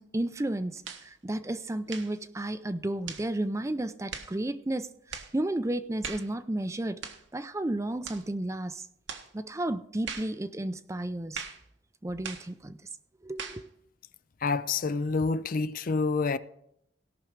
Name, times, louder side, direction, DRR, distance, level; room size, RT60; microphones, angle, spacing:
voice 1, 0.0-7.0 7.3-8.9 9.3-11.4 12.0-12.8 13.2-13.6, right 1 dB, 15° right, 0.5 m, -32 dB
sound 1, 0.8-1.1 1.9-2.2 3.1-3.3 4.1-4.4 5.1-5.3 6.0-6.3 7.0-7.3 8.0-8.3 9.1-9.3 10.1-10.4 11.3-11.6 12.2-12.5 13.4-13.7, right 6 dB, 70° right, 1.3 m, -40 dB
voice 2, 14.4-16.4, left 4 dB, 45° left, 0.4 m, -27 dB
17.5 x 6.1 x 4.6 m
head